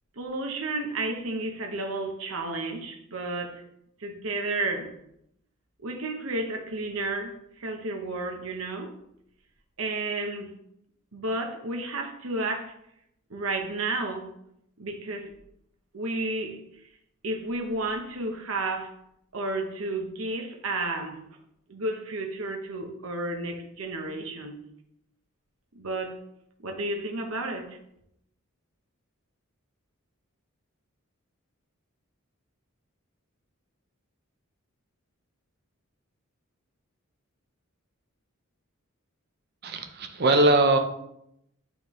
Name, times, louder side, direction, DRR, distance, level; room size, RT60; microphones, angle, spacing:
voice 1, 0.2-3.6 4.0-4.9 5.8-8.9 9.8-10.5 11.1-12.7 13.3-14.3 14.8-15.3 15.9-16.6 17.2-18.9 19.3-21.2 21.7-24.6 25.7-26.1 26.6-27.8, right 2 dB, 70° right, 4 dB, 0.9 m, -32 dB
voice 2, 39.6-40.8, right 2 dB, 50° right, 6 dB, 0.7 m, -21 dB
8.9 x 3.4 x 3.1 m, 0.77 s
head